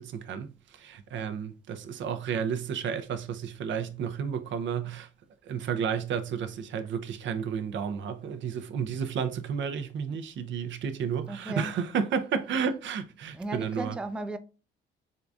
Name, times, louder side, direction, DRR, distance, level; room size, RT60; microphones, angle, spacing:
voice 1, 0.0-5.1 5.5-14.0, right 7 dB, 70° right, 0.6 m, -32 dB
voice 2, 11.3-11.8 13.3-14.4, right 2 dB, 5° right, 0.4 m, -35 dB
3.8 x 3.4 x 2.5 m
cardioid pair, 90°, 20 cm